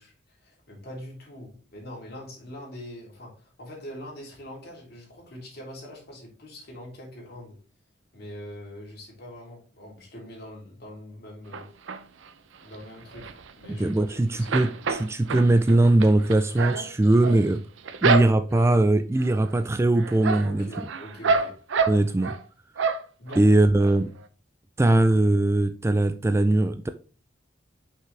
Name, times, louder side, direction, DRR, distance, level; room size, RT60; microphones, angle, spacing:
voice 1, 0.0-7.6 8.1-11.7 12.6-14.7 20.4-21.6 23.2-23.6, left 1 dB, 55° left, 3.0 m, -43 dB
sound 1, 11.5-12.3 12.7-14.1 14.3-18.7 19.2-19.6 19.9-22.4 22.8-23.4 23.8-23.9 24.2-24.3, right 4 dB, 80° right, 0.6 m, -28 dB
voice 2, 13.7-17.6 18.0-20.9 21.9-22.3 23.4-24.1 24.8-26.9, right 2 dB, 15° right, 0.3 m, -21 dB
5.8 x 5.7 x 3.3 m
head